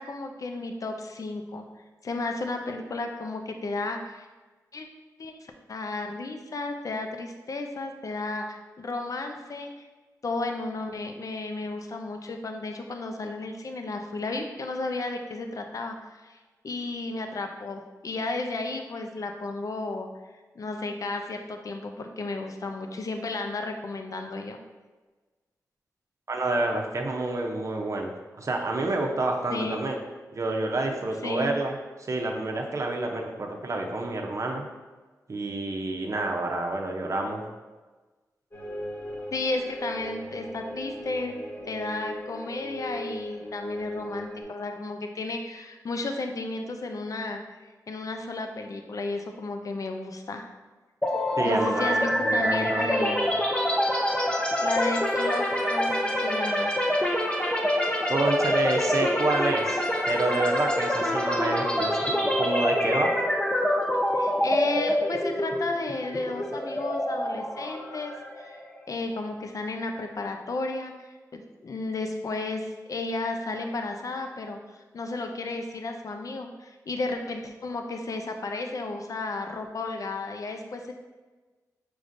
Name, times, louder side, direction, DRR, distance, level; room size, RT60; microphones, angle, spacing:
voice 1, 0.0-1.6 2.0-4.3 4.7-4.9 5.2-9.7 10.2-16.4 16.6-20.1 20.6-24.6 29.5-29.8 31.2-31.5 39.3-41.4 41.7-50.5 51.4-53.2 54.3-56.7 64.1-68.5 68.9-74.6 74.9-80.9, left 3 dB, 55° left, 4 dB, 0.5 m, -33 dB
voice 2, 26.3-28.1 28.4-30.0 30.3-31.7 32.1-34.7 35.3-37.4 51.4-53.1 58.1-59.8 60.1-63.2, right 2 dB, 50° right, 1 dB, 0.6 m, -28 dB
sound 1, 38.5-44.4, equal, 35° left, 1.2 m, -37 dB
sound 2, 51.0-68.8, equal, 15° left, 0.6 m, -26 dB
4.9 x 3.2 x 2.6 m, 1.3 s
cardioid pair, 50°, 7 cm